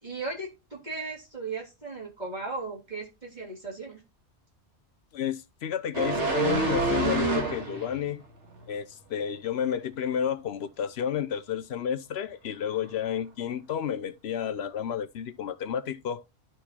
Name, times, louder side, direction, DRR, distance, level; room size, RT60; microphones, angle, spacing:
voice 1, 0.0-4.0, right 3 dB, 40° right, 3.5 m, -36 dB
voice 2, 5.1-8.2 8.7-16.2, left 8 dB, 70° left, 0.9 m, -31 dB
sound 1, 5.9-8.0 8.4-8.6, right 3 dB, 80° right, 2.2 m, -27 dB
11.5 x 4.6 x 4.3 m
omnidirectional pair, 1.2 m